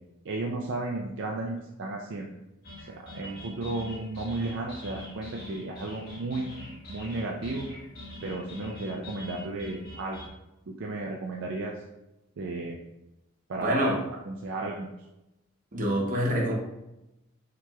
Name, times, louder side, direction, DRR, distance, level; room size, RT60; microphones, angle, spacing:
voice 1, 0.2-2.3 3.0-6.5 6.9-7.7 8.2-10.2 10.7-11.8 12.4-12.8 13.5-13.9 14.2-14.9, right 2 dB, 60° right, 0 dB, 0.4 m, -33 dB
sound 1, 2.6-10.3, left 1 dB, 50° left, 1.3 m, -43 dB
voice 2, 13.6-14.0 15.7-16.5, equal, 40° right, -3 dB, 1.0 m, -26 dB
5.8 x 2.9 x 2.3 m, 0.93 s
head